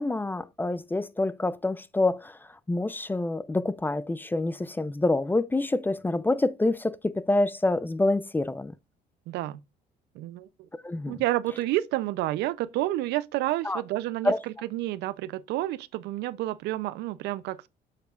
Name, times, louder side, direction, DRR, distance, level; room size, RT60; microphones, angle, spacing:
voice 1, 0.0-8.7 10.8-11.2 13.6-13.8 14.2-14.4, left 2 dB, 10° left, 0.4 m, -27 dB
voice 2, 9.3-9.6 10.1-10.5 11.1-17.7, right 16 dB, 85° right, 0.6 m, -30 dB
8.0 x 6.9 x 2.4 m
cardioid pair, 110°, 17 cm